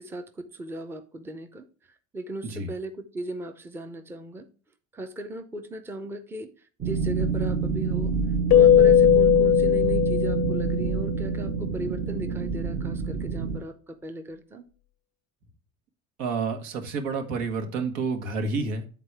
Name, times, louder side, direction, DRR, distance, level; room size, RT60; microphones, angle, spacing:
voice 1, 0.0-1.7 2.1-4.5 4.9-6.5 6.8-8.1 8.5-14.7, right 1 dB, 5° right, 7 dB, 0.6 m, -37 dB
sound 1, 6.8-13.6, right 5 dB, 40° right, 0.9 m, -27 dB
Keyboard (musical), 8.5-11.0, left 11 dB, 60° left, 0.5 m, -18 dB
voice 2, 16.2-18.9, right 4 dB, 80° right, 5 dB, 1.6 m, -29 dB
8.2 x 4.1 x 4.6 m, 0.40 s
cardioid pair, 135°, 31 cm